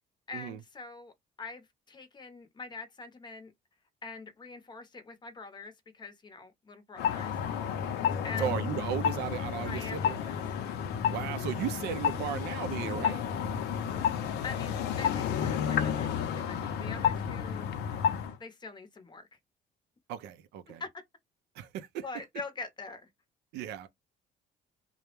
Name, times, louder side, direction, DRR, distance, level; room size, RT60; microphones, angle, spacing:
voice 1, 0.3-3.5 4.0-7.3 8.2-8.5 9.6-10.4 13.9-14.2 14.4-17.8 18.4-19.3 20.8-20.9 22.0-23.1, left 4 dB, 25° left, 0.6 m, -44 dB
sound 1, 7.0-18.3, left 8 dB, 80° left, 0.5 m, -31 dB
voice 2, 8.4-10.2 11.1-13.3 20.1-20.8 21.5-22.2 23.5-23.9, right 9 dB, 80° right, 0.4 m, -36 dB
2.2 x 2.0 x 2.9 m
cardioid pair, 110°, 17 cm